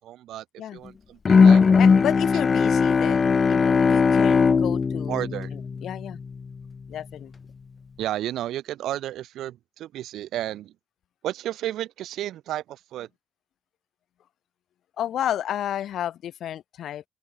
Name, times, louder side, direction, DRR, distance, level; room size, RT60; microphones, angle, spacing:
voice 1, 0.0-0.4 0.7-1.6 5.1-5.5 8.0-10.7 11.2-13.1, right 13 dB, 80° right, 6.8 m, -32 dB
Bowed string instrument, 1.2-6.3, left 5 dB, 40° left, 0.4 m, -19 dB
voice 2, 1.8-5.2 5.5-6.2 6.9-7.3 15.0-17.0, left 11 dB, 70° left, 3.9 m, -31 dB
open air
cardioid pair, 90°, 0 cm